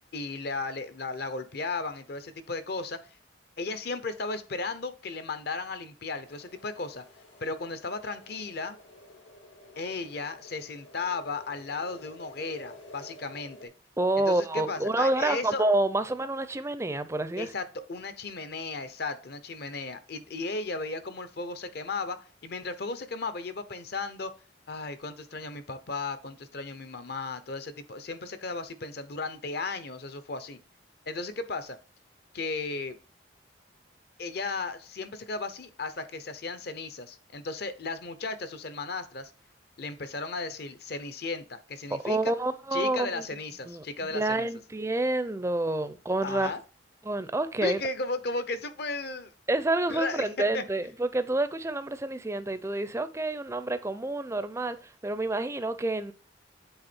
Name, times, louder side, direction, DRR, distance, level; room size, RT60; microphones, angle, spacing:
voice 1, 0.1-3.0 3.6-7.0 7.4-8.8 9.8-13.7 14.3-15.6 17.4-24.3 24.7-30.6 31.1-31.8 32.3-33.0 34.2-39.3 39.8-42.3 42.7-44.5 46.2-46.6 47.6-49.3 49.9-50.3 50.5-50.6, left 3 dB, 55° left, 0.7 m, -35 dB
sound 1, 6.2-13.7, left 1 dB, 90° left, 2.3 m, -51 dB
voice 2, 14.0-17.5 42.0-43.3 43.7-46.5 47.0-47.8 49.5-54.8 55.0-56.1, right 2 dB, 15° right, 0.4 m, -28 dB
8.1 x 3.5 x 4.3 m
head